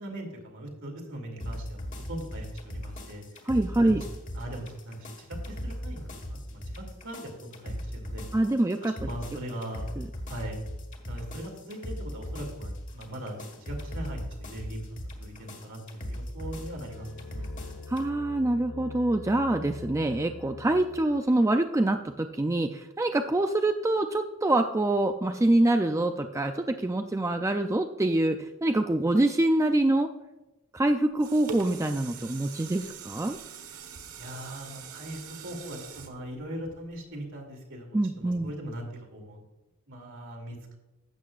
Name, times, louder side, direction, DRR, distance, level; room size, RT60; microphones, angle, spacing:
voice 1, 0.0-3.5 3.8-4.0 4.3-8.2 9.0-9.9 10.3-10.6 11.1-14.9 15.2-17.1 17.4-17.9 34.2-39.4 39.9-40.8, right 1 dB, 60° right, 1 dB, 2.6 m, -40 dB
sound 1, 1.4-18.1, equal, 35° left, 1.6 m, -39 dB
voice 2, 3.5-4.0 8.3-9.1 10.0-10.1 17.9-30.1 30.7-33.4 37.9-38.5, right 1 dB, 15° right, 6 dB, 0.4 m, -25 dB
sound 2, 16.2-21.4, left 3 dB, 70° left, 1.0 m, -43 dB
filling the water, 30.9-37.2 37.7-37.8, right 5 dB, 90° right, 1.3 m, -44 dB
12.5 x 8.4 x 2.4 m, 1.0 s
head